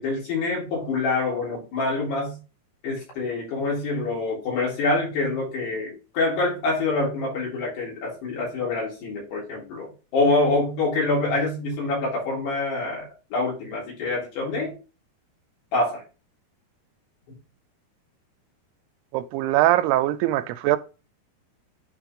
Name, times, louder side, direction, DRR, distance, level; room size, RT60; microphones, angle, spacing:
voice 1, 0.0-2.4 2.8-13.0 13.3-14.7 15.7-16.0, left 3 dB, 80° left, 5.8 m, -26 dB
voice 2, 19.1-20.8, right 15 dB, 85° right, 2.6 m, -21 dB
9.8 x 3.9 x 3.6 m
omnidirectional pair, 4.7 m